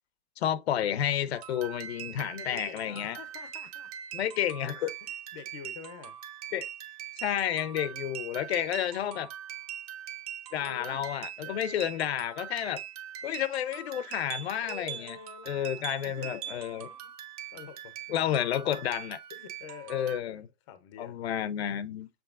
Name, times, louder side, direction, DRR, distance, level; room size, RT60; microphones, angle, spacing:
voice 1, 0.4-3.2 4.1-4.9 6.5-6.7 7.2-9.3 10.5-12.8 13.2-15.2 15.5-16.9 18.1-19.2 19.9-20.4 21.0-22.1, left 10 dB, 75° left, 0.6 m, -31 dB
sound 1, 1.3-20.2, right 10 dB, 35° right, 0.6 m, -42 dB
voice 2, 2.3-3.9 5.0-6.2 10.6-11.0 11.4-12.0 14.6-17.1 17.5-18.4 19.3-20.4 20.7-21.2, left 7 dB, 30° left, 0.4 m, -47 dB
7.0 x 3.1 x 2.4 m
supercardioid pair, 165°, 32 cm